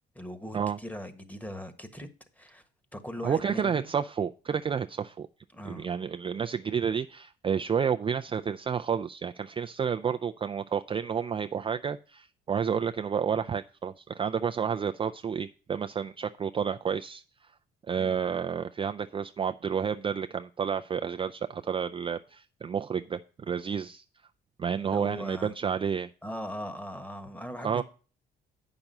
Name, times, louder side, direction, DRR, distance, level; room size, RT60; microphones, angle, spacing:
voice 1, 0.1-2.1 2.4-2.6 2.9-3.9 5.5-5.9 18.0-18.4 24.8-25.5 26.2-27.8, equal, 10° left, 1.4 m, -40 dB
voice 2, 3.2-5.3 5.7-17.2 17.9-23.2 23.5-24.0 24.6-26.1 27.6-27.8, right 7 dB, 25° right, 0.4 m, -30 dB
8.7 x 6.0 x 5.3 m
cardioid pair, 95°, 20 cm